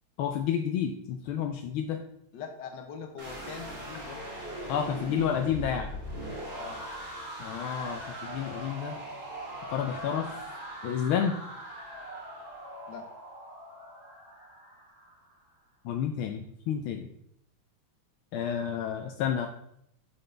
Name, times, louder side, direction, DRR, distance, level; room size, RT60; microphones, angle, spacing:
voice 1, 0.2-2.0 4.7-5.9 7.4-9.0 9.7-10.3 10.8-11.3 15.8-17.1 18.3-19.5, left 8 dB, 80° left, 5 dB, 1.4 m, -30 dB
voice 2, 2.3-4.2 6.5-6.8 12.9-13.1, left 6 dB, 60° left, 4 dB, 1.5 m, -42 dB
sound 1, 3.2-15.2, equal, 60° right, 3.3 m, -41 dB
11.5 x 4.1 x 3.3 m, 0.72 s
omnidirectional pair, 2.3 m